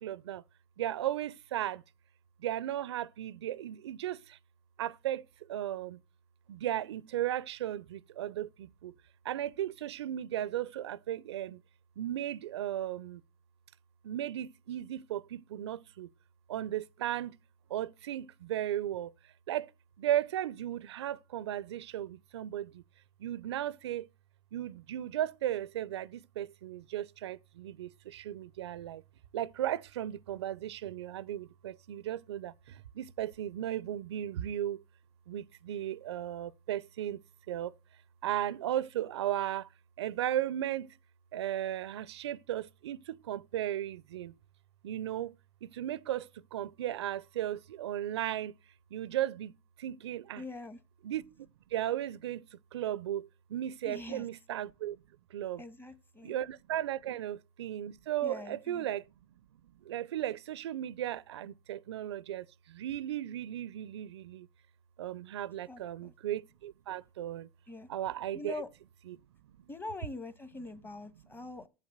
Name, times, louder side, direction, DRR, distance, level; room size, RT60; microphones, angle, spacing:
voice 1, 0.0-0.4 0.8-1.8 2.4-4.4 4.8-6.0 6.5-8.9 9.2-11.6 12.0-13.2 14.0-16.1 16.5-17.4 17.7-19.1 19.5-19.7 20.0-22.8 23.2-24.1 24.5-29.0 29.3-34.8 35.3-37.2 37.5-37.7 38.2-39.7 40.0-41.0 41.3-44.3 44.8-45.3 45.6-48.5 48.9-50.4 51.0-55.0 55.3-55.6 56.2-59.0 59.8-64.5 65.0-67.5 67.9-68.6 69.1-69.2, right 12 dB, 80° right, 0.4 m, -36 dB
voice 2, 50.4-50.8 53.8-54.2 55.6-56.3 57.0-57.1 58.2-58.9 65.7-66.1 67.7-67.9 68.3-68.7 69.7-71.7, left 2 dB, 15° left, 1.2 m, -43 dB
7.4 x 7.3 x 7.8 m
hypercardioid pair, 90°, 14 cm